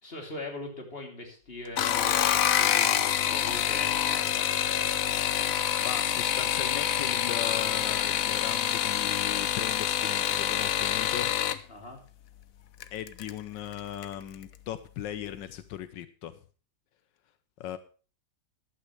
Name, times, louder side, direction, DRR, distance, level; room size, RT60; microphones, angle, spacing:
voice 1, 0.0-5.2 11.7-12.0, left 2 dB, 30° left, 2 dB, 3.4 m, -41 dB
sound 1, 1.7-11.6 12.8-13.3 13.7-14.1 14.4-14.5, left 10 dB, 60° left, 1.1 m, -27 dB
voice 2, 5.8-11.3 12.9-16.4 17.6-17.8, left 11 dB, 85° left, 12 dB, 1.5 m, -38 dB
14.5 x 11.5 x 3.2 m, 0.37 s
omnidirectional pair, 1.9 m